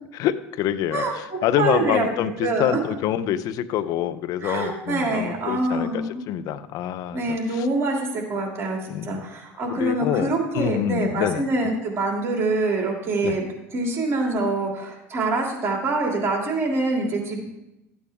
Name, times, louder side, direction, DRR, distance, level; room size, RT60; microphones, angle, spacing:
voice 1, 0.2-7.7 8.9-9.2 9.8-11.4 13.2-13.4, left 11 dB, 60° left, 13 dB, 0.7 m, -26 dB
voice 2, 0.9-2.1 2.4-2.8 4.4-6.2 7.1-13.4 13.7-17.4, right 2 dB, 35° right, 0 dB, 2.8 m, -25 dB
14.0 x 8.6 x 3.6 m, 0.90 s
hypercardioid pair, 90°, 7 cm